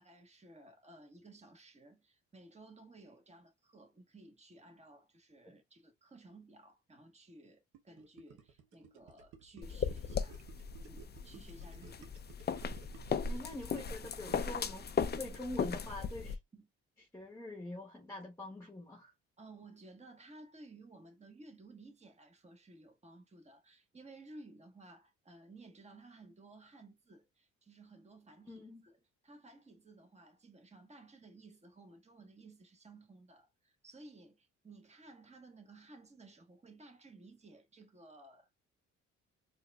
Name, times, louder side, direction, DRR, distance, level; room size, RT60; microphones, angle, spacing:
voice 1, 0.0-10.4 10.8-12.2 16.5-16.7 19.4-38.6, right 2 dB, 20° right, 1.3 m, -57 dB
Gurgling, 7.7-14.8, right 7 dB, 80° right, 1.0 m, -56 dB
sound 1, 9.6-16.4, left 6 dB, 35° left, 0.5 m, -37 dB
voice 2, 13.3-16.4 17.1-19.1 28.5-28.9, left 1 dB, 10° left, 1.2 m, -45 dB
4.6 x 2.6 x 2.3 m
cardioid pair, 90°, 30 cm